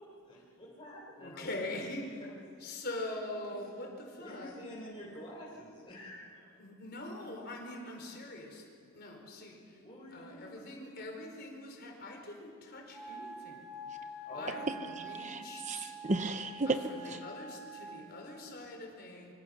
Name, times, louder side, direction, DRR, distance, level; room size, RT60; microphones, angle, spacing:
voice 1, 0.0-2.3 3.4-3.5 4.2-6.6 9.8-10.7 11.2-11.3 14.2-14.7, left 1 dB, 25° left, -6 dB, 4.2 m, -48 dB
voice 2, 1.2-2.1 2.6-4.5 6.6-8.6 8.9-9.6 10.1-13.6 14.4-14.7 15.0-15.9 17.0-19.3, left 2 dB, 45° left, 2 dB, 4.7 m, -43 dB
Wind instrument woodwind instrument, 12.9-18.1, right 1 dB, ahead, 5.1 m, -46 dB
voice 3, 14.9-17.3, right 2 dB, 35° right, 8 dB, 0.7 m, -35 dB
25.5 x 25.0 x 6.7 m, 2.3 s
head